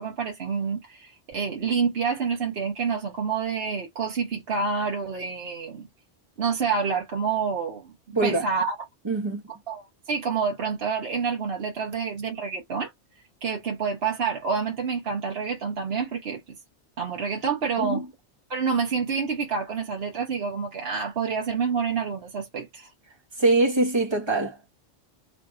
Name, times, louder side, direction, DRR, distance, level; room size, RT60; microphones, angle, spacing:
voice 1, 0.0-5.9 6.4-7.9 8.2-8.8 9.7-12.9 13.4-16.4 17.0-18.0 18.5-22.9, right 5 dB, 60° right, 1.3 m, -28 dB
voice 2, 8.1-8.5 9.0-9.4 17.8-18.1 23.4-24.8, right 2 dB, 25° right, 1.1 m, -23 dB
3.3 x 2.9 x 3.7 m
omnidirectional pair, 1.2 m